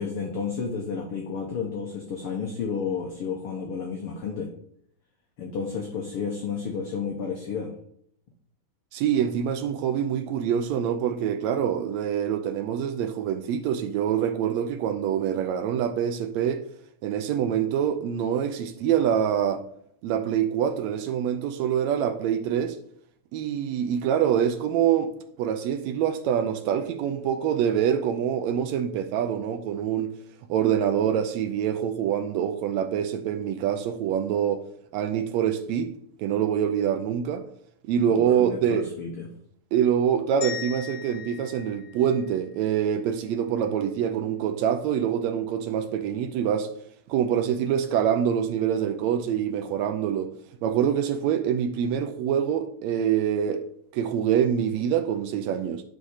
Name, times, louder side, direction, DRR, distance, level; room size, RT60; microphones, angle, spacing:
voice 1, 0.0-4.5 5.4-7.7 38.1-39.3, left 5 dB, 65° left, 1.5 m, -31 dB
voice 2, 8.9-16.6 17.0-19.6 20.0-22.8 23.3-25.1 25.4-30.1 30.5-34.6 34.9-35.9 36.2-37.4 37.8-38.9 39.7-46.7 47.1-50.3 50.6-53.6 53.9-55.8, right 9 dB, 80° right, 1.6 m, -25 dB
sound 1, 40.4-42.7, left 9 dB, 40° left, 1.3 m, -39 dB
10.5 x 4.2 x 4.8 m
omnidirectional pair, 3.6 m